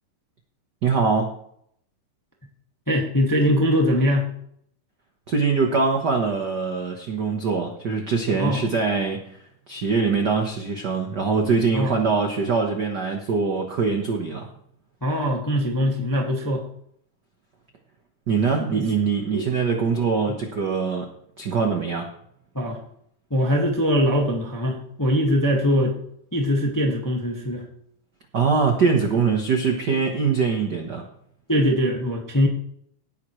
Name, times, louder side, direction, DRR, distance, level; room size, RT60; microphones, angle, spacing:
voice 1, 0.8-1.3 5.3-9.4 9.7-14.5 18.3-21.1 21.4-22.1 28.3-31.0, right 5 dB, 55° right, 3 dB, 1.1 m, -23 dB
voice 2, 2.9-4.3 8.3-8.6 11.7-12.0 15.0-16.6 18.7-18.9 19.3-19.5 22.5-22.8 23.3-25.9 26.3-27.6 31.5-32.5, equal, 10° left, 0 dB, 1.1 m, -22 dB
18.0 x 10.5 x 3.2 m, 0.68 s
omnidirectional pair, 3.7 m